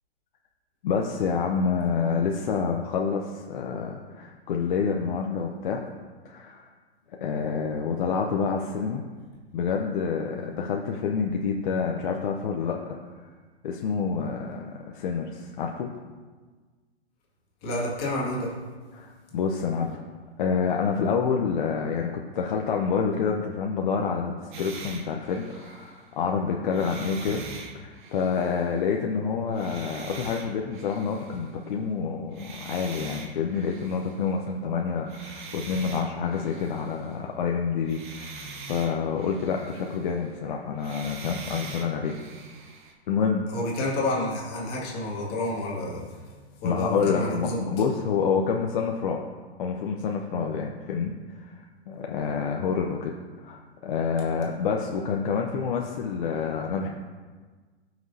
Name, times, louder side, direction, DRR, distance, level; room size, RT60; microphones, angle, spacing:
voice 1, 0.8-5.8 6.2-6.7 7.2-9.0 9.5-12.8 13.2-13.3 13.6-15.9 18.9-20.0 20.4-27.4 27.8-42.1 43.1-43.5 46.6-49.2 49.6-51.6 51.9-53.1 53.4-56.9, left 6 dB, 50° left, 1 dB, 0.8 m, -28 dB
voice 2, 17.6-18.5 43.5-46.0 46.6-47.6, left 1 dB, 30° left, -4 dB, 2.2 m, -29 dB
sound 1, 24.5-26.2 26.7-29.0 29.5-31.9 32.2-34.5 35.1-37.5 37.8-40.5 40.8-42.9, right 3 dB, 50° right, 1.5 m, -43 dB
13.5 x 6.1 x 2.8 m, 1.4 s
hypercardioid pair, 145°, 33 cm